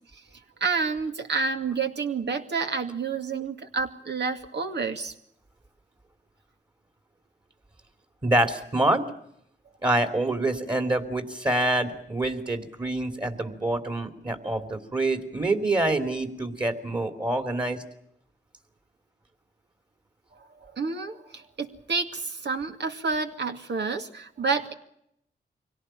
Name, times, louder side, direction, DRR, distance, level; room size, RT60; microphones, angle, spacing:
voice 1, 0.6-5.1 20.3-24.7, right 4 dB, 70° right, 5 dB, 2.3 m, -29 dB
voice 2, 8.2-9.0 9.8-17.8, right 1 dB, 25° right, 7 dB, 3.0 m, -26 dB
24.0 x 17.5 x 9.0 m, 0.75 s
cardioid pair, 65°, 18 cm